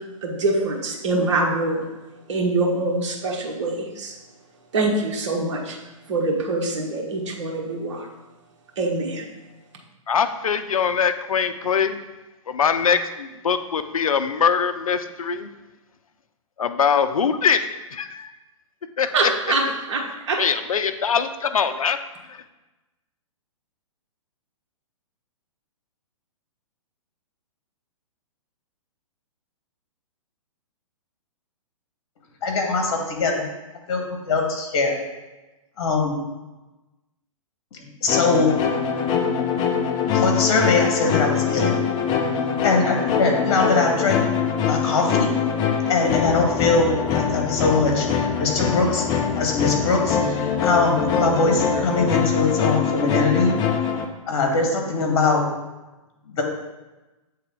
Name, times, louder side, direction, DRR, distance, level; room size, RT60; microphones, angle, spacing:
voice 1, 0.2-1.9 2.3-4.1 4.7-5.8 6.1-8.1 8.8-9.2 19.1-20.4, right 2 dB, 55° right, 0 dB, 1.3 m, -24 dB
voice 2, 10.1-12.0 12.5-15.5 16.6-17.6 17.9-18.3 19.0-19.3 20.4-22.0, left 6 dB, 75° left, 10 dB, 0.5 m, -22 dB
voice 3, 32.4-33.4 33.9-34.9 35.8-36.2 37.7-38.5 40.1-41.7 42.6-44.2 44.6-45.3 45.9-53.5 54.3-55.4 56.4-56.5, left 3 dB, 50° left, 2 dB, 1.5 m, -22 dB
sound 1, 38.1-54.0, left 7 dB, 25° left, 0.5 m, -23 dB
7.7 x 3.4 x 3.7 m, 1.1 s
figure-of-eight pair, 120°, 18 cm